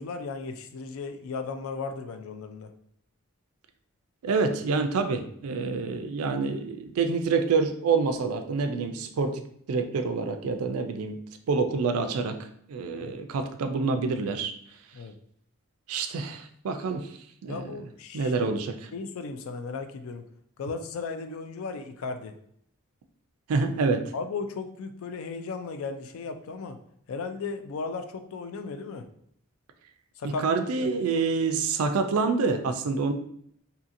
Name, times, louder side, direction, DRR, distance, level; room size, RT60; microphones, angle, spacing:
voice 1, 0.0-2.7 13.0-13.1 14.9-15.1 17.5-18.5 18.9-20.2 20.6-22.3 24.1-26.8 27.1-29.1 30.2-30.5 30.8-30.9, left 4 dB, 70° left, 7 dB, 0.3 m, -36 dB
voice 2, 4.2-9.4 9.7-11.2 11.5-12.4 12.7-14.5 15.9-17.1 17.4-17.7 18.1-18.8 23.5-24.0 30.2-33.1, right 4 dB, 80° right, 7 dB, 0.4 m, -27 dB
2.7 x 2.7 x 2.5 m, 0.68 s
head